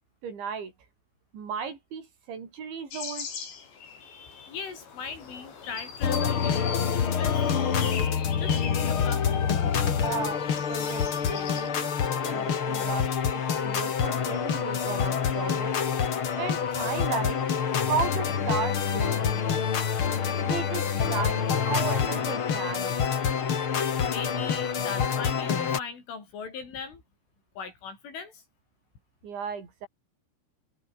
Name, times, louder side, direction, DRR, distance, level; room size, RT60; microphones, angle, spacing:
voice 1, 0.2-0.7 1.3-3.3 9.9-11.9 12.3-15.8 16.4-17.4 17.8-19.7 20.5-23.0 29.2-29.9, right 6 dB, 70° right, 7.4 m, -35 dB
sound 1, 2.9-11.7, left 6 dB, 65° left, 7.8 m, -41 dB
voice 2, 4.0-7.9 8.4-9.3 24.1-27.0 27.6-28.4, left 6 dB, 85° left, 8.9 m, -39 dB
sound 2, 6.0-25.8, left 7 dB, 50° left, 1.6 m, -27 dB
omnidirectional pair, 5.5 m